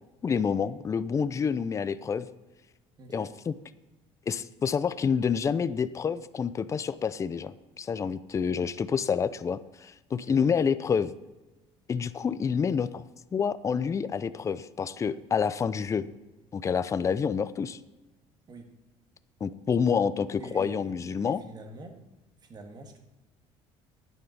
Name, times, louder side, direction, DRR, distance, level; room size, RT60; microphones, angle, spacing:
voice 1, 0.2-2.3 3.1-3.5 4.3-11.1 11.9-13.0 13.3-16.1 16.5-17.8 19.4-21.4, left 6 dB, 25° left, 14 dB, 0.5 m, -28 dB
voice 2, 3.0-3.3 10.1-10.4 18.5-18.7 20.4-22.0 22.4-23.0, right 3 dB, 35° right, 4 dB, 1.8 m, -46 dB
10.5 x 9.5 x 5.4 m, 1.1 s
cardioid pair, 115°, 12 cm